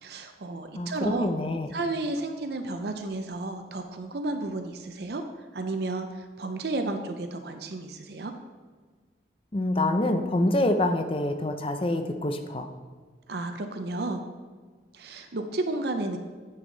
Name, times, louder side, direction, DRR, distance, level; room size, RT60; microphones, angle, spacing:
voice 1, 0.0-1.3 1.7-5.2 5.5-8.3 13.3-14.2 14.9-16.2, right 2 dB, 60° right, 6 dB, 0.6 m, -32 dB
voice 2, 0.8-1.8 9.5-12.7, left 1 dB, 30° left, 7 dB, 0.5 m, -26 dB
9.2 x 5.5 x 3.9 m, 1.5 s
head